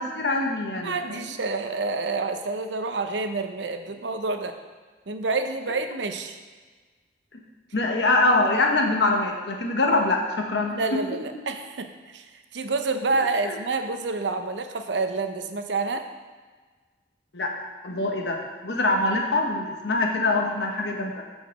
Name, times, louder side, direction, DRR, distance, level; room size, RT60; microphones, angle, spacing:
voice 1, 0.0-1.3 7.7-11.0 13.5-13.6 17.3-17.5 17.8-21.2, left 2 dB, 75° left, 1 dB, 1.2 m, -24 dB
voice 2, 0.8-4.6 5.1-6.4 10.7-12.3 12.5-16.1, right 3 dB, 90° right, 7 dB, 0.7 m, -28 dB
8.0 x 4.9 x 6.5 m, 1.4 s
head